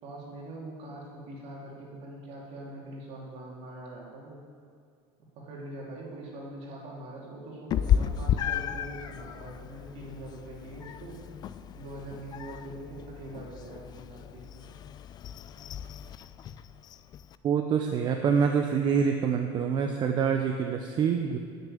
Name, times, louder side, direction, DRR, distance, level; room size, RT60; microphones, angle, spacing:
voice 1, 0.0-4.4 5.3-11.2 11.7-14.6, right 1 dB, 50° right, -3 dB, 3.2 m, -43 dB
Meow, 7.7-17.4, left 9 dB, 30° left, 0.4 m, -33 dB
voice 2, 17.4-21.4, right 6 dB, 35° right, 4 dB, 0.7 m, -26 dB
9.9 x 6.8 x 8.5 m, 2.2 s
cardioid pair, 140°, 13 cm